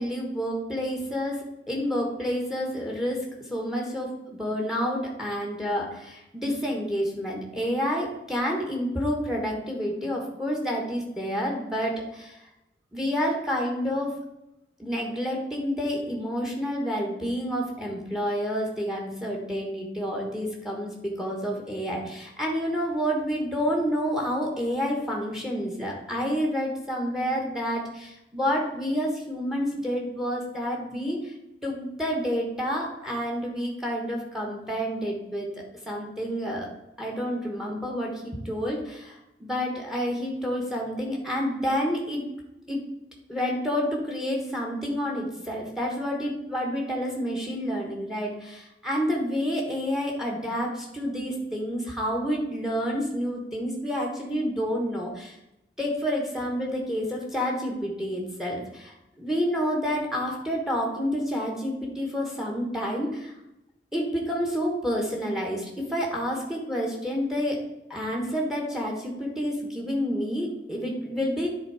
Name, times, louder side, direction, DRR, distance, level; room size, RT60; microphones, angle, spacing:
voice 1, 0.0-1.4 1.7-3.2 3.5-12.4 12.9-14.1 14.8-31.3 31.6-35.5 35.9-36.7 37.0-42.2 42.7-42.8 43.3-55.4 55.8-63.3 63.9-67.6 67.9-71.5, equal, 5° right, -1 dB, 1.4 m, -29 dB
10.0 x 3.9 x 4.9 m, 0.89 s
head